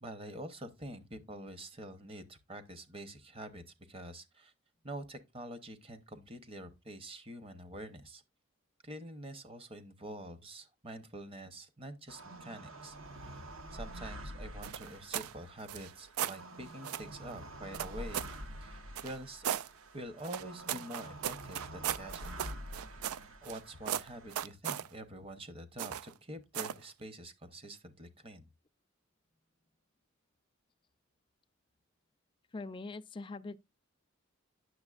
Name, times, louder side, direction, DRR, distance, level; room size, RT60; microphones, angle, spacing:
voice 1, 0.0-4.5 4.8-8.2 8.8-13.0 13.2-13.4 13.7-19.5 19.9-22.5 23.4-28.5, right 1 dB, 25° right, 0.8 m, -46 dB
sound 1, 12.1-24.5, right 1 dB, 65° right, 0.9 m, -47 dB
sound 2, 14.6-15.3 15.6-16.4 16.8-17.1 17.7-18.4 18.9-19.7 20.2-23.6 23.8-24.9 25.8-26.1 26.5-26.8, right 10 dB, 85° right, 0.4 m, -37 dB
voice 2, 32.5-33.6, left 3 dB, 25° left, 0.3 m, -42 dB
9.6 x 6.8 x 2.4 m
head